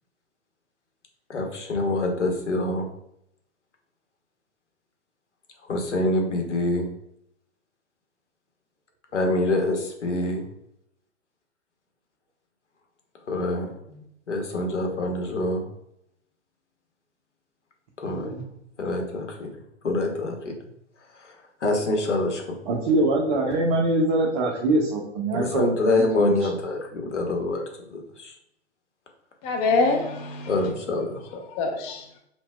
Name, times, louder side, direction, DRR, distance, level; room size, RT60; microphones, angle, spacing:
voice 1, 1.3-2.9 5.6-6.9 9.1-10.4 13.3-15.6 18.0-18.4 18.8-19.5 19.8-20.6 21.1-22.6 25.3-28.4 30.5-31.2, left 2 dB, 75° left, 1.0 m, -26 dB
voice 2, 18.1-18.4 22.7-26.4, right 2 dB, 30° right, 0.6 m, -24 dB
voice 3, 29.4-31.0 31.5-32.1, left 3 dB, 25° left, 0.5 m, -25 dB
5.6 x 2.2 x 2.3 m
figure-of-eight pair, 110°, 36 cm